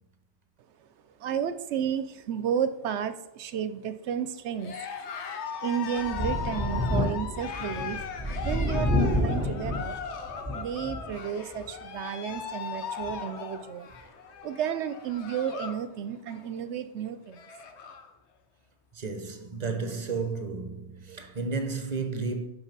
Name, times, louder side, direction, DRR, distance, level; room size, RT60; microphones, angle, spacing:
voice 1, 1.1-4.8 5.6-8.1 8.4-10.0 10.5-13.9 14.4-17.5, right 8 dB, 75° right, 0.8 m, -32 dB
Cheering, 4.6-15.8 16.1-16.6 17.0-17.1 17.3-18.1, left 6 dB, 70° left, 1.0 m, -38 dB
Thunder, 6.0-11.2 11.6-11.7 13.0-13.1, left 1 dB, 15° right, 2.1 m, -29 dB
voice 2, 18.9-22.5, right 4 dB, 40° right, 0.8 m, -32 dB
5.7 x 5.6 x 5.9 m
omnidirectional pair, 1.2 m